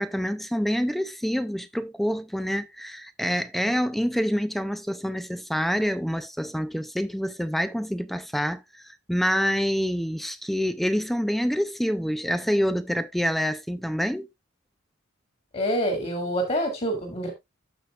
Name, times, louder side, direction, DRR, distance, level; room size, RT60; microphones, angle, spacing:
voice 1, 0.0-14.3, equal, ahead, 0.5 m, -27 dB
voice 2, 15.5-17.3, equal, 30° left, 3.2 m, -26 dB
14.5 x 5.2 x 2.4 m
head